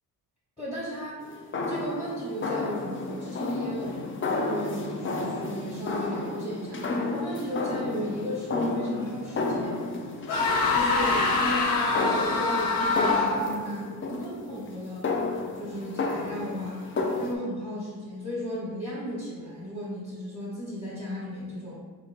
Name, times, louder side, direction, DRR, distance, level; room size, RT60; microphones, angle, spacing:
voice 1, 0.6-9.9 10.7-15.1 15.5-16.8 17.2-21.8, equal, 10° left, -8 dB, 1.3 m, -35 dB
sound 1, 1.2-17.3, left 3 dB, 35° left, 0.5 m, -32 dB
sound 2, 10.3-13.6, left 3 dB, 75° left, 0.7 m, -25 dB
3.8 x 2.5 x 4.5 m, 1.4 s
cardioid pair, 120°, 37 cm